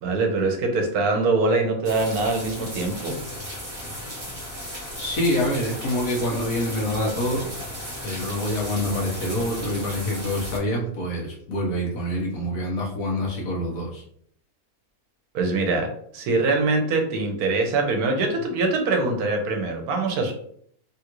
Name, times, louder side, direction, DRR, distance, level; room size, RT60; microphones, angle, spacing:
voice 1, 0.0-3.2 15.3-20.3, right 3 dB, 85° right, 3 dB, 1.2 m, -23 dB
sound 1, 1.8-10.6, equal, 25° right, 1.1 m, -35 dB
voice 2, 5.0-7.5 8.0-14.0, left 1 dB, 70° left, -2 dB, 1.3 m, -26 dB
3.4 x 2.4 x 2.9 m, 0.63 s
omnidirectional pair, 1.6 m